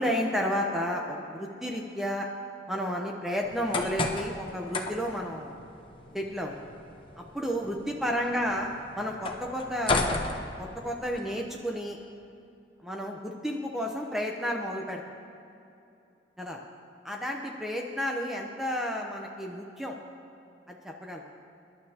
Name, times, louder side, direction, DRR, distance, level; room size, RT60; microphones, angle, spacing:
voice 1, 0.0-2.3 2.7-5.6 6.1-6.5 7.2-8.7 9.0-10.3 10.6-12.0 12.8-15.0 16.4-16.6 17.1-20.0 20.7-21.2, equal, ahead, 0 dB, 0.8 m, -32 dB
sound 1, 3.4-11.2, left 2 dB, 30° left, 0.9 m, -34 dB
24.5 x 11.5 x 2.9 m, 2.7 s
head